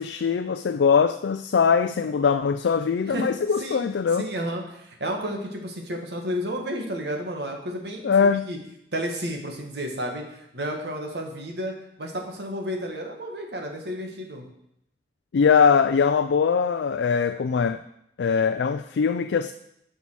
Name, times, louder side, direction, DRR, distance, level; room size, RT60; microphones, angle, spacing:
voice 1, 0.0-4.3 8.0-8.5 15.3-17.8 18.2-19.5, left 6 dB, 85° left, 0.4 m, -21 dB
voice 2, 4.2-8.6 8.9-11.7 12.0-14.5, equal, 70° right, 1.7 m, -32 dB
9.3 x 5.6 x 6.2 m
head